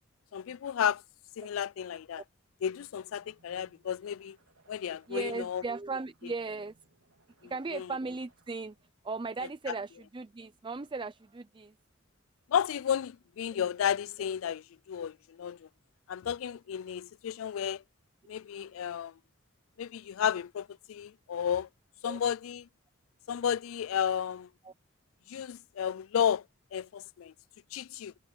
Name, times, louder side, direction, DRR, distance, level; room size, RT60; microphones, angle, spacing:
voice 1, 0.3-1.0 1.4-2.2 2.6-4.4 4.7-5.6 7.4-7.9 12.5-15.7 16.1-17.8 18.3-19.1 19.8-21.7 22.0-22.7 23.3-24.5 25.3-26.4 26.7-27.3 27.7-28.1, left 8 dB, 75° left, 0.3 m, -32 dB
sound 1, 2.9-8.9, right 3 dB, 90° right, 3.6 m, -67 dB
voice 2, 5.1-6.8 7.4-8.8 9.0-11.7 22.0-22.2 24.6-24.7, right 3 dB, 25° right, 0.5 m, -37 dB
head